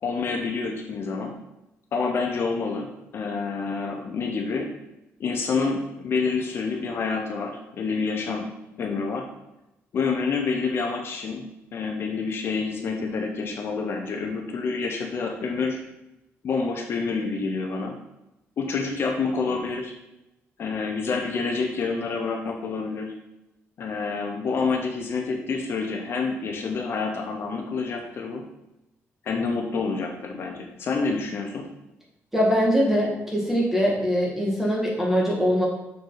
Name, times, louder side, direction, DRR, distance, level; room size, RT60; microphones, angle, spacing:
voice 1, 0.0-1.3 1.9-4.7 5.2-8.5 8.8-9.3 9.9-15.8 16.4-18.0 18.6-19.9 20.6-23.1 23.8-28.4 29.2-31.7, left 4 dB, 50° left, 2 dB, 0.8 m, -28 dB
voice 2, 32.3-35.7, equal, 5° right, -3 dB, 1.7 m, -22 dB
6.4 x 4.6 x 4.0 m, 0.92 s
cardioid pair, 135°, 5 cm